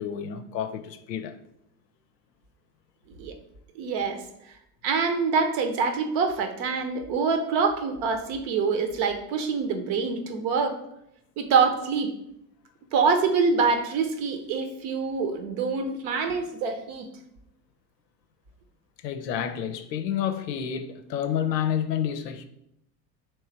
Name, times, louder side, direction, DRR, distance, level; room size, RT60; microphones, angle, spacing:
voice 1, 0.0-1.3 19.0-22.5, left 9 dB, 80° left, 0.6 m, -29 dB
voice 2, 3.7-4.2 4.8-10.8 11.4-12.1 12.9-17.1, right 5 dB, 55° right, 0.8 m, -25 dB
3.3 x 3.2 x 4.5 m
figure-of-eight pair, 70°, 49 cm